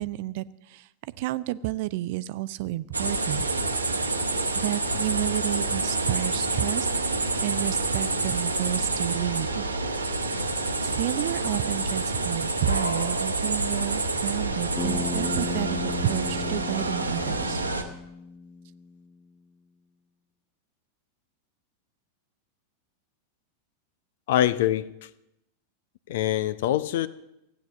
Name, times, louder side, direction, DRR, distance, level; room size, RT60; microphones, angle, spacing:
voice 1, 0.0-3.5 4.5-6.9 7.4-9.6 10.8-17.6, right 16 dB, 50° right, 0.5 m, -31 dB
sound 1, 2.9-17.8, right 2 dB, 80° right, 1.2 m, -28 dB
Bass guitar, 14.8-19.1, left 4 dB, 15° left, 1.3 m, -35 dB
voice 2, 24.3-25.1 26.1-27.1, left 12 dB, 55° left, 0.6 m, -24 dB
15.5 x 9.2 x 7.0 m
figure-of-eight pair, 90°, 0 cm